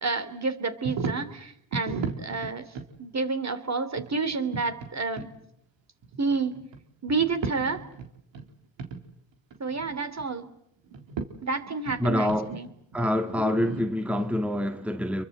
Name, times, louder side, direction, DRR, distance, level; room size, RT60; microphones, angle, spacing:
voice 1, 0.0-2.6 3.0-5.3 6.2-6.6 7.0-7.8 9.6-10.5 11.4-12.7 13.4-13.7, right 4 dB, 35° right, 3.1 m, -29 dB
sound 1, 0.8-1.3 1.7-2.9 4.0-4.9 5.2-5.3 6.0-6.8 7.1-8.5 8.8-9.0 9.3-10.3 10.9-11.3 11.6-14.3, right 5 dB, 75° right, 3.6 m, -35 dB
voice 2, 12.0-12.6 12.9-15.2, left 1 dB, 5° right, 1.9 m, -26 dB
28.5 x 23.5 x 7.9 m
supercardioid pair, 60°, 45 cm